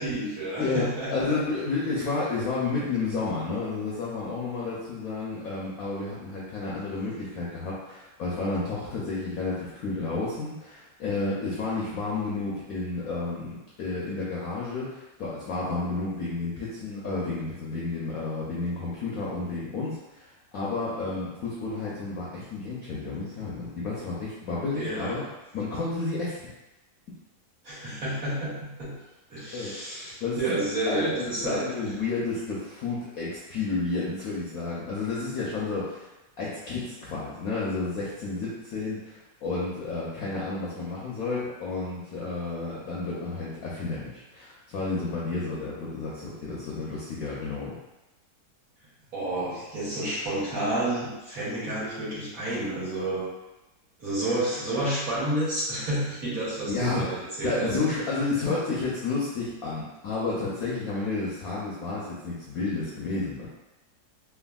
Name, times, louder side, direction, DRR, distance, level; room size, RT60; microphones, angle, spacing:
voice 1, 0.0-1.4 24.8-25.2 27.6-28.9 29.3-31.9 49.1-53.2 54.0-57.8, right 1 dB, 55° right, -9 dB, 1.5 m, -30 dB
voice 2, 0.6-25.2 25.5-26.4 29.5-29.7 30.2-36.0 36.4-47.7 56.7-57.0 57.4-63.5, left 3 dB, 70° left, -6 dB, 0.9 m, -31 dB
3.4 x 2.2 x 2.3 m, 1.0 s
omnidirectional pair, 1.9 m